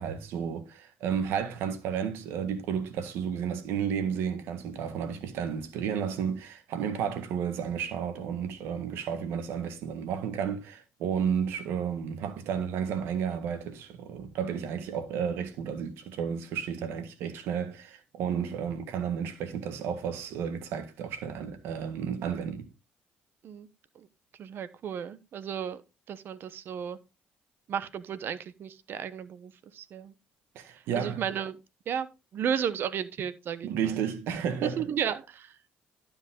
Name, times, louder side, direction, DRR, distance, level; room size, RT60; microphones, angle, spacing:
voice 1, 0.0-22.7 30.5-31.2 33.6-34.8, right 7 dB, 80° right, 1.6 m, -32 dB
voice 2, 24.4-25.8 26.1-27.0 27.7-30.1 30.7-31.6 31.9-32.1 32.3-34.0 34.6-35.6, right 8 dB, 65° right, 0.9 m, -34 dB
12.0 x 5.3 x 3.7 m
supercardioid pair, 70°, 4 cm